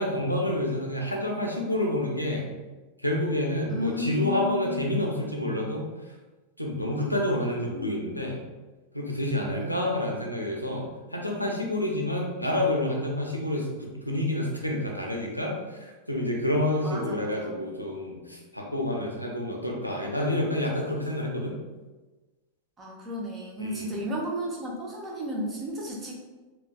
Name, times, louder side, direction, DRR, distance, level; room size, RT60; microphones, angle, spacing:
voice 1, 0.0-2.5 3.0-5.9 6.6-8.4 8.9-21.6 23.6-24.0, left 1 dB, 90° left, -1 dB, 0.5 m, -28 dB
voice 2, 3.7-4.8 9.4-9.8 16.8-17.6 22.8-26.1, left 1 dB, 20° right, -3 dB, 0.7 m, -33 dB
3.7 x 2.3 x 2.3 m, 1.2 s
figure-of-eight pair, 90°, 0 cm